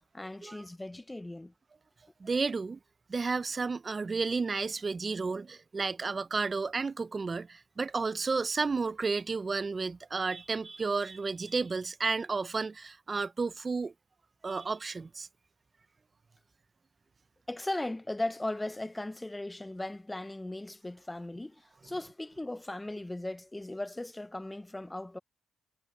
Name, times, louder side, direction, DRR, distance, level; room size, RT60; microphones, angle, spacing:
voice 1, 0.1-1.5 17.5-25.2, left 1 dB, 15° left, 0.7 m, -37 dB
voice 2, 2.2-2.8 3.1-13.9 14.4-15.3, right 4 dB, 35° right, 0.7 m, -32 dB
cardioid pair, 75°, 0 cm